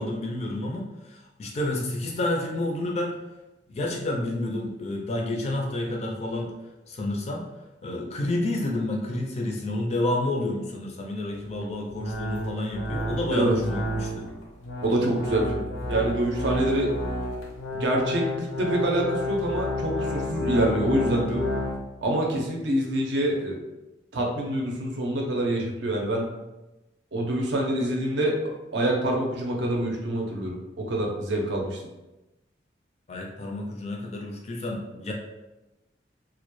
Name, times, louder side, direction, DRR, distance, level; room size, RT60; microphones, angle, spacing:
voice 1, 0.0-3.1 3.7-6.5 6.9-7.4 7.8-14.3 33.1-35.1, left 1 dB, 35° left, 0 dB, 0.4 m, -30 dB
Pump Organ - C Major chords, 11.3-21.8, left 1 dB, 85° left, 0.6 m, -31 dB
voice 2, 14.8-15.6 15.9-16.9 17.7-21.5 22.0-23.6 24.1-26.3 27.1-28.4 28.7-31.8, right 1 dB, 70° right, 0 dB, 0.5 m, -26 dB
2.1 x 2.0 x 3.0 m, 1.0 s
head